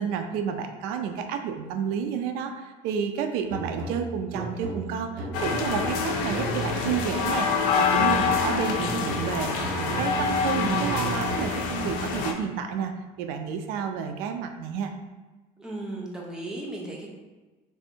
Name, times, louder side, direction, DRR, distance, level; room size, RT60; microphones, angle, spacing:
voice 1, 0.0-12.9 13.2-14.9, right 7 dB, 85° right, 6 dB, 0.4 m, -30 dB
sound 1, 3.5-7.4 7.9-11.8, right 2 dB, 60° right, 0.9 m, -36 dB
sound 2, 5.3-12.3, left 5 dB, 75° left, 0.6 m, -26 dB
voice 2, 15.6-17.1, right 2 dB, 5° right, -3 dB, 0.6 m, -35 dB
3.3 x 2.6 x 4.3 m, 1.2 s
cardioid pair, 175°, 15 cm